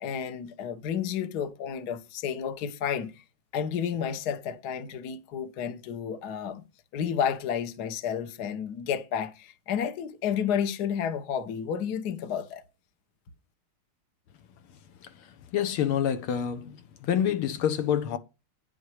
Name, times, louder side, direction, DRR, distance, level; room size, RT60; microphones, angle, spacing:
voice 1, 0.0-3.1 3.5-6.6 6.9-12.6, left 8 dB, 55° left, 1.4 m, -31 dB
voice 2, 15.5-16.7 17.0-18.2, left 9 dB, 80° left, 1.8 m, -26 dB
9.8 x 6.4 x 4.9 m
omnidirectional pair, 2.4 m